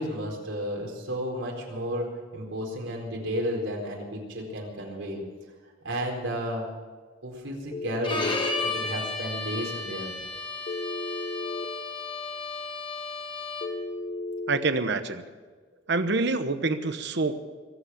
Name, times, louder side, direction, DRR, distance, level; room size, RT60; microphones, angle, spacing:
voice 1, 0.0-5.2 5.8-6.7 7.2-8.3 8.6-10.1, equal, 80° right, -1 dB, 4.4 m, -32 dB
Telephone, 7.7-8.7 10.7-11.7 13.6-14.6, left 2 dB, 40° left, 1.0 m, -34 dB
Bowed string instrument, 8.0-13.9, left 3 dB, 25° left, 1.7 m, -33 dB
voice 2, 14.5-15.2 15.9-17.4, right 3 dB, 60° right, 10 dB, 1.0 m, -26 dB
22.5 x 8.7 x 7.2 m, 1.4 s
head